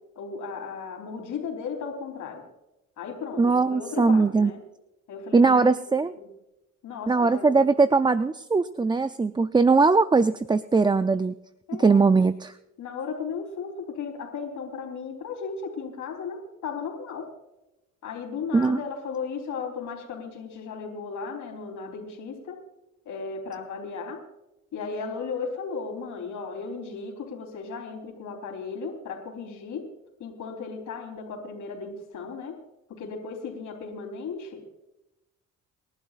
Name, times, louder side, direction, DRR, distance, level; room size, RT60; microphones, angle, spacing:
voice 1, 0.2-2.4 3.0-4.6 5.1-6.3 6.8-7.6 11.7-12.0 12.8-17.3 18.0-22.6 23.1-24.2 24.7-29.9 30.2-32.6 32.9-34.7, left 5 dB, 75° left, 1 dB, 3.8 m, -35 dB
voice 2, 3.4-4.5 5.3-6.1 7.1-11.3 11.7-12.5 18.5-18.8, right 4 dB, 15° right, 12 dB, 0.4 m, -20 dB
28.5 x 11.5 x 2.5 m, 0.95 s
cardioid pair, 90°, 30 cm